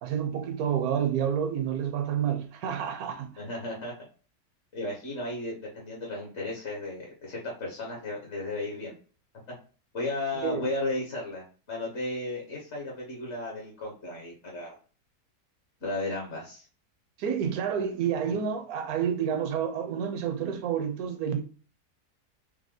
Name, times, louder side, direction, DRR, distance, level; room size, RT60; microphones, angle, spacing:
voice 1, 0.0-3.4 10.4-10.7 17.2-21.4, right 8 dB, 70° right, 1.1 m, -29 dB
voice 2, 3.4-3.9 4.7-8.9 9.9-14.7 15.8-16.7, left 2 dB, 45° left, 1.4 m, -34 dB
4.9 x 2.1 x 3.7 m
omnidirectional pair, 1.7 m